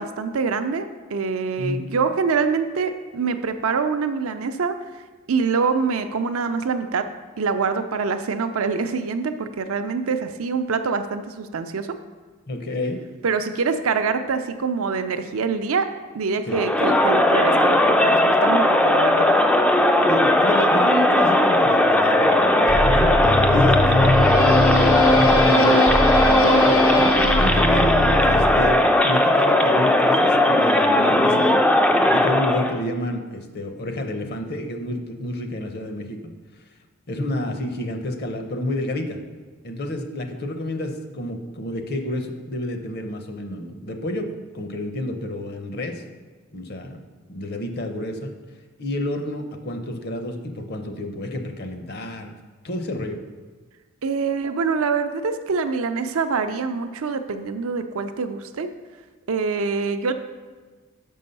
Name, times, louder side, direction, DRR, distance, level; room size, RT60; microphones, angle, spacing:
voice 1, 0.0-4.7 5.3-7.1 7.4-11.9 13.2-15.9 16.1-19.3 54.0-58.7 59.3-60.1, right 5 dB, 75° right, 8 dB, 0.5 m, -25 dB
voice 2, 12.5-13.0 16.5-16.6 20.0-26.9 27.4-27.9 28.2-31.6 32.1-36.3 37.1-39.2 39.6-46.0 46.5-47.0 47.3-48.3 48.8-52.3 52.6-53.2, left 1 dB, 50° left, 5 dB, 0.7 m, -29 dB
Crowd, 16.5-32.8, left 1 dB, 5° left, 0.3 m, -18 dB
sound 1, 22.7-28.9, left 1 dB, 70° left, 0.9 m, -21 dB
6.0 x 5.5 x 5.4 m, 1.4 s
head